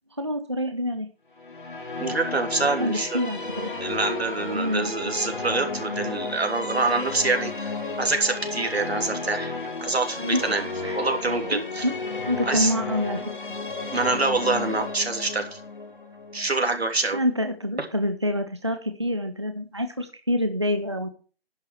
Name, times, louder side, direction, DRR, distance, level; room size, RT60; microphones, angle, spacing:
voice 1, 0.2-1.1 2.6-3.7 4.5-5.1 10.2-10.4 10.8-11.1 11.5-11.9 12.3-13.5 17.1-21.1, left 1 dB, 30° right, 7 dB, 0.7 m, -27 dB
sound 1, 1.4-17.4, left 3 dB, 55° left, 2.4 m, -33 dB
voice 2, 2.0-3.2 3.8-7.5 8.0-9.5 9.8-10.6 10.9-11.9 12.5-12.7 13.9-15.5 16.3-17.2, right 3 dB, 85° right, 5 dB, 3.2 m, -25 dB
10.5 x 7.2 x 6.3 m, 0.37 s
figure-of-eight pair, 180°, 31 cm